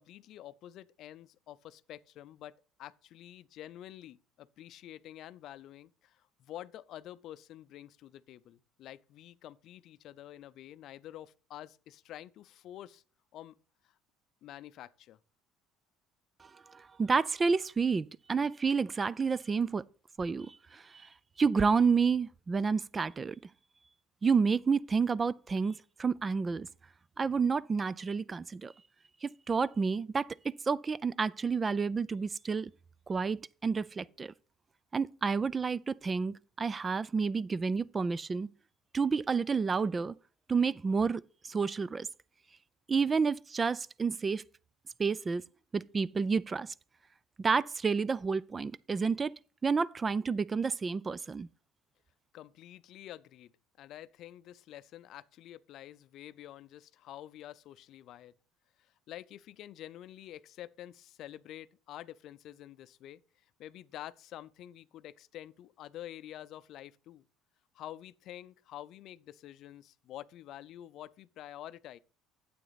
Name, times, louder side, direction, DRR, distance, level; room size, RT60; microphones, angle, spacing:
voice 1, 0.0-13.0 13.3-13.6 13.8-14.0 14.4-15.2 52.3-53.5 53.8-58.3 58.8-63.2 63.6-67.2 67.7-72.0, left 12 dB, 65° left, 0.5 m, -48 dB
voice 2, 16.4-19.8 20.2-21.1 21.4-23.4 24.2-26.7 27.2-28.7 29.2-32.7 33.1-34.3 34.9-38.5 38.9-40.1 40.5-42.1 42.9-44.4 45.0-45.4 45.7-46.7 47.4-49.3 49.6-51.5, right 5 dB, 25° right, 0.3 m, -30 dB
9.1 x 7.8 x 4.0 m
supercardioid pair, 100°, 0 cm